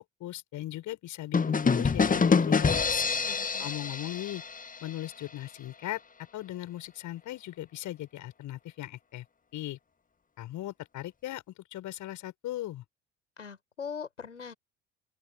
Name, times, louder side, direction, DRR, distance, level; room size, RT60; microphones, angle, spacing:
voice 1, 0.0-3.0 3.6-4.4 4.8-6.0 6.3-9.2 9.5-9.8 10.4-12.8, left 14 dB, 55° left, 7.9 m, -38 dB
sound 1, 1.3-5.1, left 5 dB, 20° left, 1.8 m, -26 dB
voice 2, 3.0-3.7 13.4-14.5, left 6 dB, 80° left, 7.5 m, -41 dB
open air
figure-of-eight pair, 55°, 36 cm